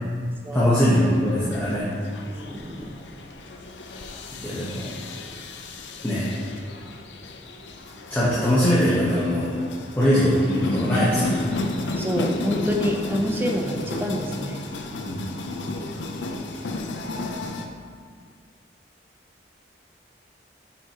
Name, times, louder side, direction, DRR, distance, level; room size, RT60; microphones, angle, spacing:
voice 1, 0.5-1.9 4.4-4.9 6.0-6.2 8.1-9.6 10.0-11.5 15.0-15.2, equal, 10° left, -10 dB, 1.1 m, -21 dB
sound 1, 0.8-17.7, left 2 dB, 90° left, 0.6 m, -33 dB
voice 2, 2.3-2.9 12.0-14.6, equal, 15° right, 1 dB, 0.6 m, -27 dB
8.3 x 5.6 x 2.9 m, 2.1 s
head